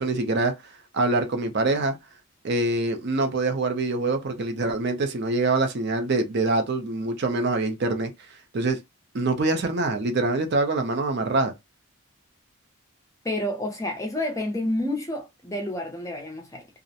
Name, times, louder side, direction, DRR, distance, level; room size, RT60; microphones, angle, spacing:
voice 1, 0.0-2.0 2.4-8.1 8.5-8.8 9.1-11.5, right 2 dB, 50° right, 0.5 m, -25 dB
voice 2, 13.2-16.7, left 1 dB, 15° left, 0.5 m, -29 dB
2.4 x 2.0 x 2.7 m
head